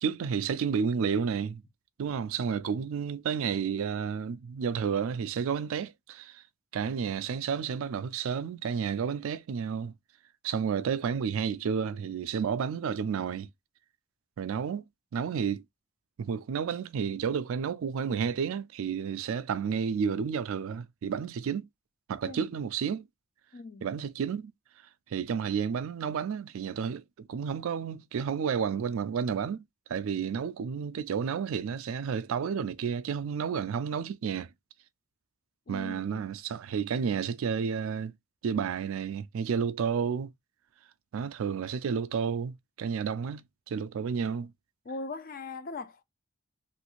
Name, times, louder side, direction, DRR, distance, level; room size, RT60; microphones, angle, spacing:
voice 1, 0.0-1.6 2.0-6.4 6.7-9.9 10.4-13.5 14.4-14.8 15.1-15.6 16.2-21.7 22.1-23.1 23.8-24.5 25.1-29.6 29.9-34.5 35.7-38.1 38.4-40.3 41.1-44.5, right 6 dB, 75° right, 0.3 m, -31 dB
voice 2, 23.5-23.9 35.7-36.2 44.9-46.0, left 3 dB, 40° left, 0.4 m, -40 dB
3.1 x 2.5 x 3.0 m
head